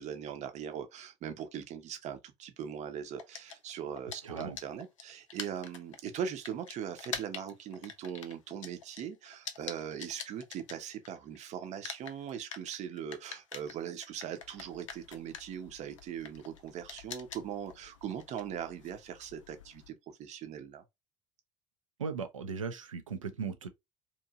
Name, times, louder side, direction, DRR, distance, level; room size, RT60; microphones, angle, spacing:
voice 1, 0.0-20.8, right 8 dB, 45° right, 0.6 m, -40 dB
sound 1, 3.2-11.4 11.6-19.9, left 7 dB, 80° left, 0.4 m, -45 dB
voice 2, 4.2-4.6 22.0-23.7, right 5 dB, 85° right, 0.4 m, -37 dB
2.9 x 2.5 x 2.4 m
figure-of-eight pair, 60°, 16 cm